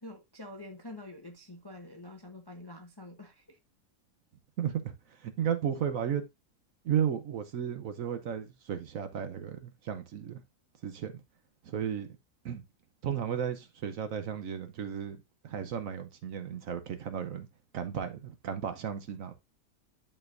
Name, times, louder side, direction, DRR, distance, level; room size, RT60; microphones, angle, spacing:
voice 1, 0.0-3.6, left 1 dB, 25° left, 0.6 m, -47 dB
voice 2, 4.6-4.9 5.2-6.2 6.8-10.4 10.8-11.1 11.6-12.1 12.4-12.6 13.0-15.2 15.4-17.5 17.7-19.3, right 8 dB, 60° right, 1.1 m, -34 dB
11.0 x 4.4 x 2.5 m
omnidirectional pair, 1.7 m